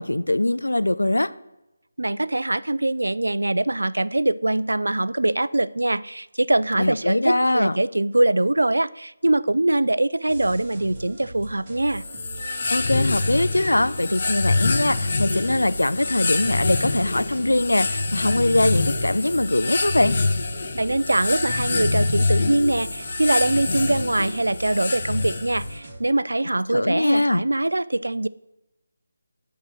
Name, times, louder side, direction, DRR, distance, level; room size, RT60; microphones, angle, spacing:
voice 1, 0.0-1.3 6.8-7.8 12.7-20.2 26.7-27.4, left 1 dB, 70° left, 14 dB, 0.4 m, -22 dB
voice 2, 2.0-12.0 20.7-28.3, right 1 dB, 65° right, 17 dB, 0.3 m, -23 dB
sound 1, 10.3-26.0, right 2 dB, 25° right, 1.6 m, -40 dB
sound 2, 11.9-25.8, left 3 dB, 40° left, 0.8 m, -26 dB
10.5 x 3.7 x 6.3 m, 0.94 s
figure-of-eight pair, 155°, 0 cm